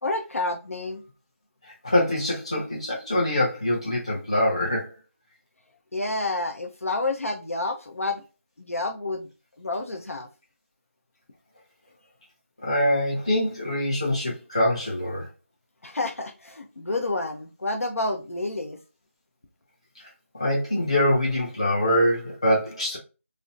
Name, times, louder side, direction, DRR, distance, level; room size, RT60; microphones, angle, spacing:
voice 1, 0.0-1.0 5.9-8.2 8.6-9.3 9.6-10.3 15.8-18.8, left 2 dB, 75° left, 0.6 m, -29 dB
voice 2, 1.8-4.9 12.6-15.3 20.3-23.0, left 1 dB, 25° left, 0.6 m, -24 dB
2.5 x 2.0 x 2.5 m
figure-of-eight pair, 175°, 8 cm